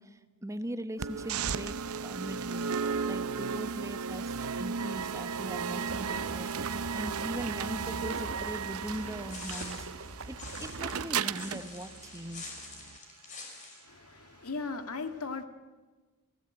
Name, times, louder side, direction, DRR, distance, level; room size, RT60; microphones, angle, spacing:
voice 1, 0.0-2.7 3.1-12.5, right 1 dB, 15° right, 10 dB, 1.0 m, -40 dB
sound 1, 1.0-13.0, right 6 dB, 75° right, 0.7 m, -35 dB
sound 2, 5.9-11.0, right 3 dB, 60° right, 1.3 m, -42 dB
sound 3, 8.9-13.8, left 3 dB, 35° left, 5.6 m, -46 dB
voice 2, 13.8-15.4, left 4 dB, 80° left, 8 dB, 1.8 m, -37 dB
29.0 x 16.5 x 8.8 m, 1.3 s
head